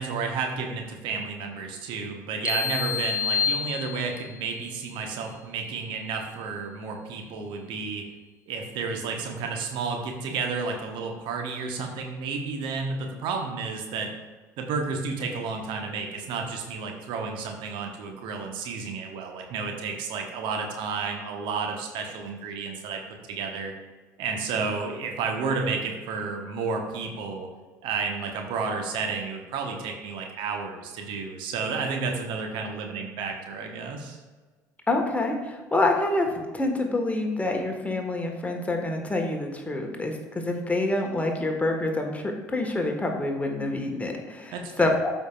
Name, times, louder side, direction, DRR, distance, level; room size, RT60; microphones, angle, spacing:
voice 1, 0.0-8.0 8.5-14.1 14.6-23.0 23.3-23.7 24.2-27.5 27.8-34.2 44.5-44.9, right 4 dB, 60° right, 2 dB, 1.2 m, -31 dB
sound 1, 2.4-4.4, left 7 dB, 90° left, 0.7 m, -28 dB
voice 2, 34.9-45.1, left 2 dB, 15° left, 2 dB, 1.5 m, -27 dB
13.0 x 5.2 x 2.4 m, 1.3 s
figure-of-eight pair, 60°, 9 cm